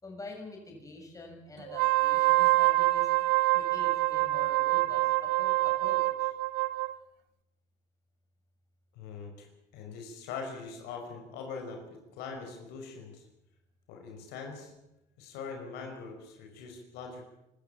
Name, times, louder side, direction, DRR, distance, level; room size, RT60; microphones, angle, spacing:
voice 1, 0.0-3.1 3.5-6.3, left 2 dB, 20° left, 1 dB, 7.2 m, -46 dB
Wind instrument woodwind instrument, 1.7-6.9, right 19 dB, 85° right, 0.8 m, -26 dB
voice 2, 8.9-13.3 13.9-14.7 15.2-17.2, left 5 dB, 80° left, 3 dB, 5.5 m, -42 dB
24.5 x 13.5 x 8.9 m, 0.91 s
supercardioid pair, 90°, 16 cm